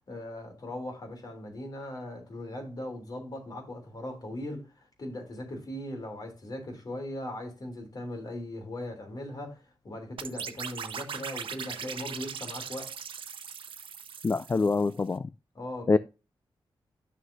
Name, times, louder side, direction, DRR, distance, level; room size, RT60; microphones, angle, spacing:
voice 1, 0.1-12.9 15.6-16.0, left 1 dB, 45° left, 3.3 m, -39 dB
sound 1, 10.2-15.0, right 7 dB, 75° right, 1.0 m, -39 dB
voice 2, 14.2-15.3 15.9-16.0, left 4 dB, 30° left, 0.3 m, -25 dB
11.5 x 6.3 x 2.7 m
wide cardioid pair, 115°, 9 cm